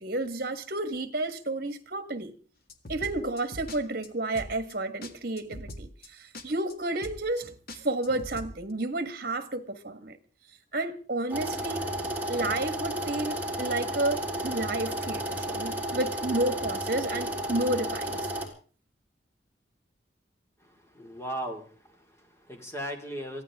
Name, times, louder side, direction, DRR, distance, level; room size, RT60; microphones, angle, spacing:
voice 1, 0.0-2.3 2.9-10.2 10.7-18.3, right 2 dB, 55° right, 1.7 m, -31 dB
sound 1, 2.7-3.8 4.0-4.1 4.3-4.7 5.0-5.1 5.4-6.1 6.3-6.4 6.7-6.8 7.0-7.4 7.7-8.5, left 1 dB, 55° left, 1.8 m, -41 dB
sound 2, 11.3-18.5, right 1 dB, 10° right, 3.9 m, -32 dB
voice 2, 20.6-23.4, equal, 15° left, 2.5 m, -38 dB
23.5 x 15.5 x 3.6 m
head